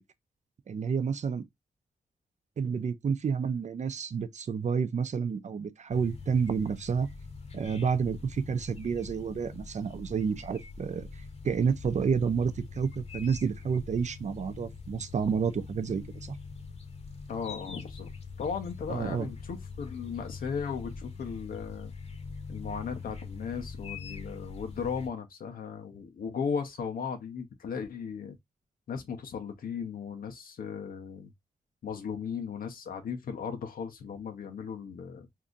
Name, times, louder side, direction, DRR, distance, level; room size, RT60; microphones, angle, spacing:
voice 1, 0.7-1.4 2.6-7.1 7.5-11.1 11.4-16.4 18.9-19.3, right 6 dB, 55° right, 0.5 m, -30 dB
sound 1, 5.9-25.1, left 4 dB, 45° left, 0.9 m, -43 dB
voice 2, 17.3-18.1 18.4-21.9 22.5-28.4 28.9-31.3 31.8-35.3, left 6 dB, 80° left, 0.8 m, -36 dB
2.7 x 2.4 x 3.8 m
supercardioid pair, 45°, 15 cm